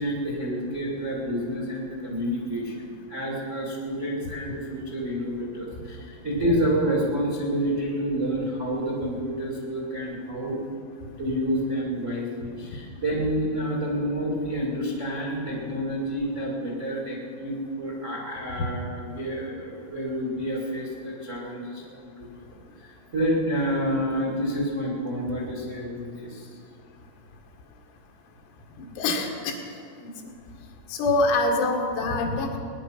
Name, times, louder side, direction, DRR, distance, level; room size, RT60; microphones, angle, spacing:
voice 1, 0.0-10.6 11.2-22.4 22.8-26.5, equal, 55° right, -4 dB, 0.8 m, -29 dB
voice 2, 28.8-29.6 30.0-30.1 31.0-32.6, left 2 dB, 80° left, 1 dB, 4.3 m, -25 dB
20.0 x 10.5 x 5.9 m, 2.3 s
omnidirectional pair, 5.9 m